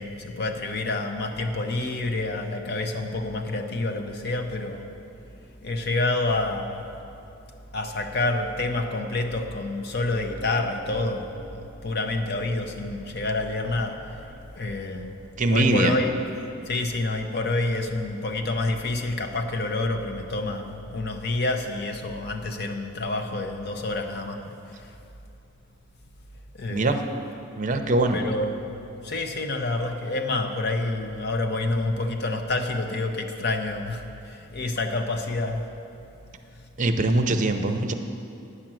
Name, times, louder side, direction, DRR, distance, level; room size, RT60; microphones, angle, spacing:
voice 1, 0.0-4.9 5.6-6.9 7.7-15.2 15.5-16.1 16.7-24.9 26.6-26.9 28.1-35.7, left 2 dB, 50° left, 5 dB, 0.7 m, -28 dB
voice 2, 15.4-16.0 26.7-27.0 27.6-28.2 36.8-37.9, right 2 dB, 35° right, 6 dB, 0.5 m, -22 dB
9.9 x 6.0 x 7.5 m, 2.7 s
head